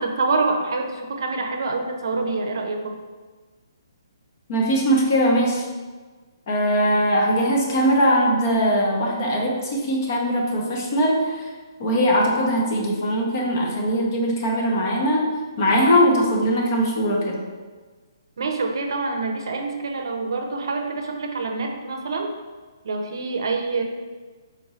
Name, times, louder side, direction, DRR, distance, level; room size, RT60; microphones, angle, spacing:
voice 1, 0.0-3.0 18.4-22.3 22.8-23.8, right 3 dB, 70° right, 3 dB, 0.5 m, -26 dB
voice 2, 4.5-5.7 6.5-11.5 11.8-15.2 15.6-17.4, equal, 40° left, -1 dB, 0.8 m, -20 dB
4.2 x 2.6 x 3.1 m, 1.4 s
hypercardioid pair, 160°, 2 cm